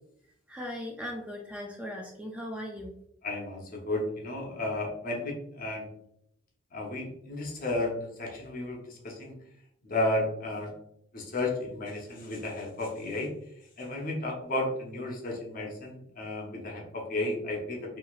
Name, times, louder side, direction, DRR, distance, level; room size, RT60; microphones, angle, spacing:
voice 1, 0.5-2.9, left 1 dB, 5° right, 0 dB, 0.3 m, -38 dB
voice 2, 3.2-5.9 6.7-9.4 9.8-10.7 11.1-13.3 13.8-18.0, left 2 dB, 45° left, -1 dB, 0.7 m, -33 dB
3.0 x 2.7 x 2.3 m, 0.75 s
head